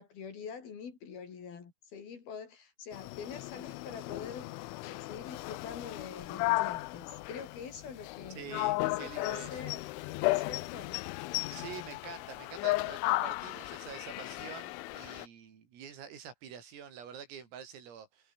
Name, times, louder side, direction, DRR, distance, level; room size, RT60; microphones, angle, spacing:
voice 1, 0.0-4.5 4.8-8.4 8.8-9.9 10.2-11.0, left 6 dB, 50° left, 5.0 m, -45 dB
sound 1, 2.9-15.3, left 20 dB, 80° left, 3.0 m, -35 dB
voice 2, 8.3-9.7 11.5-18.3, right 8 dB, 85° right, 7.1 m, -47 dB
omnidirectional pair, 5.8 m